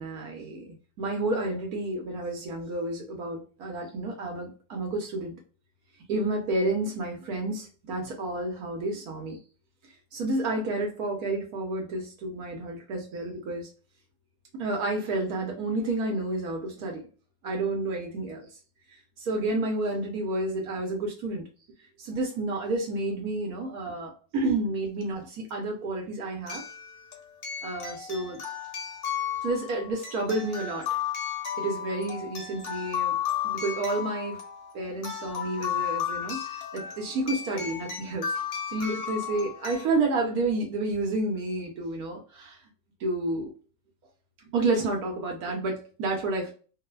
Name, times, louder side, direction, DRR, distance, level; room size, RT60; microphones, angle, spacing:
voice 1, 0.0-5.4 6.1-9.4 10.1-13.7 14.6-17.0 17.4-18.5 19.2-21.5 22.0-26.6 27.6-28.4 29.4-30.9 31.6-33.2 33.4-34.4 34.7-38.3 38.7-42.6 43.0-43.5 44.5-46.5, right 2 dB, 70° right, 1.2 m, -30 dB
sound 1, 25.0-25.1 26.5-39.9, left 8 dB, 50° left, 0.8 m, -34 dB
3.0 x 2.0 x 2.2 m
omnidirectional pair, 1.8 m